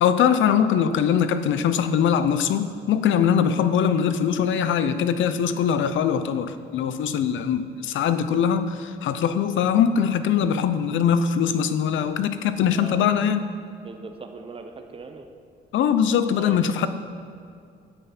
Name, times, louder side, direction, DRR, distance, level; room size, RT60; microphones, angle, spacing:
voice 1, 0.0-13.4 15.7-16.9, left 8 dB, 75° left, 11 dB, 0.7 m, -22 dB
voice 2, 12.7-13.1 13.8-15.3 16.3-16.9, right 4 dB, 30° right, 5 dB, 1.0 m, -40 dB
9.8 x 8.0 x 6.0 m, 2.3 s
cardioid pair, 90°, 20 cm